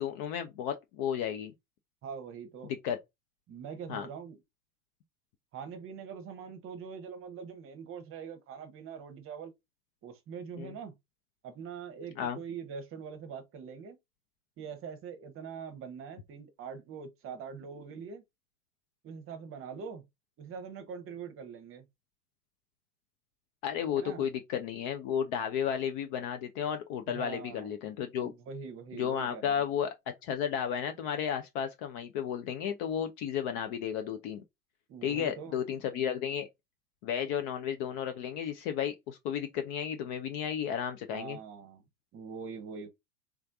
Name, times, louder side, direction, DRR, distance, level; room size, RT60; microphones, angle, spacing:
voice 1, 0.0-1.5 2.8-3.0 3.9-4.1 10.5-10.7 12.2-12.4 23.6-28.3 28.9-34.4 35.0-36.5 37.0-41.4, left 8 dB, 35° left, 0.5 m, -33 dB
voice 2, 2.0-2.7 3.5-4.4 5.5-9.5 10.0-10.9 11.4-14.0 14.6-18.2 19.0-20.0 20.4-21.8 23.9-24.2 27.0-27.7 28.2-29.5 34.9-35.6 41.1-41.8 42.1-42.9, right 6 dB, 30° right, 0.9 m, -43 dB
3.5 x 3.2 x 2.5 m
figure-of-eight pair, 85°, 45 cm